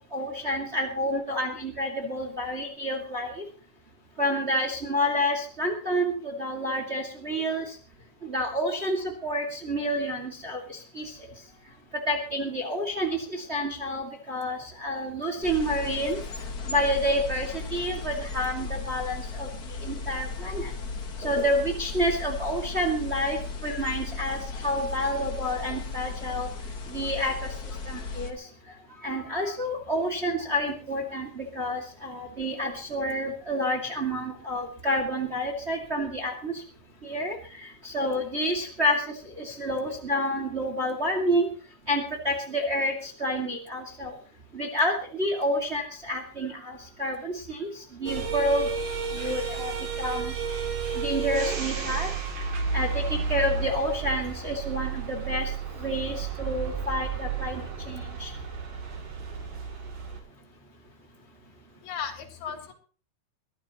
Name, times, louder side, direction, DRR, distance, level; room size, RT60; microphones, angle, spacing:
voice 1, 0.1-3.4 4.2-7.7 8.2-11.2 12.1-16.2 16.7-20.7 21.2-26.5 26.9-27.3 27.8-28.5 29.0-36.6 37.0-41.5 41.9-44.1 44.5-48.7 49.1-49.7 50.0-50.3 50.9-52.1 52.7-55.5 55.8-58.3, equal, 25° right, 3 dB, 1.6 m, -29 dB
sound 1, 15.4-28.3, left 4 dB, 55° left, 1.0 m, -36 dB
sound 2, 48.1-60.2, right 5 dB, 60° right, 4.2 m, -32 dB
voice 2, 49.2-49.6 61.8-62.7, left 7 dB, 85° left, 5 dB, 3.9 m, -37 dB
22.0 x 14.0 x 3.0 m, 0.41 s
omnidirectional pair, 4.3 m